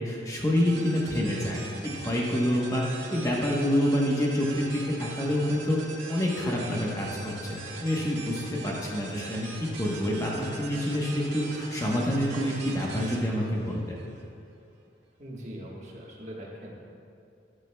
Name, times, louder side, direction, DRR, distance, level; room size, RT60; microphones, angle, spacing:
voice 1, 0.0-5.8 6.1-13.9, equal, 20° left, -3 dB, 1.0 m, -27 dB
sound 1, 0.6-14.2, right 3 dB, 85° right, 1.7 m, -42 dB
voice 2, 15.2-16.7, equal, 40° right, -3 dB, 1.4 m, -41 dB
14.0 x 9.9 x 2.3 m, 2.6 s
head